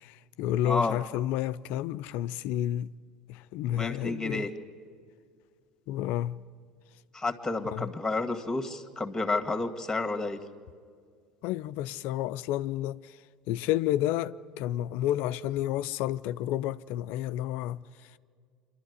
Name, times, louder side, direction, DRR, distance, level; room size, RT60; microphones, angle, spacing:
voice 1, 0.0-2.9 3.3-4.5 5.9-6.4 7.7-7.9 11.4-13.2 13.5-17.8, left 13 dB, 65° left, 0.5 m, -30 dB
voice 2, 0.6-1.0 3.7-4.5 7.1-10.4, left 3 dB, 10° left, 2.0 m, -30 dB
26.0 x 12.5 x 9.6 m
hypercardioid pair, 85°, 3 cm